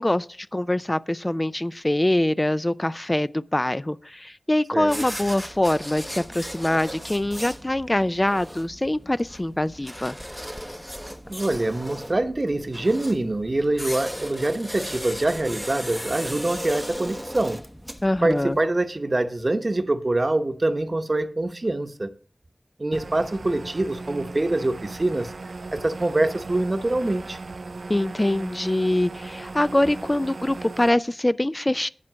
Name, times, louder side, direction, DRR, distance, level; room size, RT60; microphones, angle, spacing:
voice 1, 0.0-10.2 18.0-18.6 27.9-31.9, left 1 dB, 25° left, 0.4 m, -24 dB
voice 2, 4.7-5.0 11.3-17.6 18.2-22.1 22.8-25.3 25.7-27.4, right 2 dB, 45° right, 0.9 m, -25 dB
sound 1, 4.8-18.6, equal, ahead, 0.7 m, -37 dB
sound 2, 22.9-30.9, right 3 dB, 80° right, 0.5 m, -38 dB
8.9 x 7.5 x 6.2 m
wide cardioid pair, 50°, 0 cm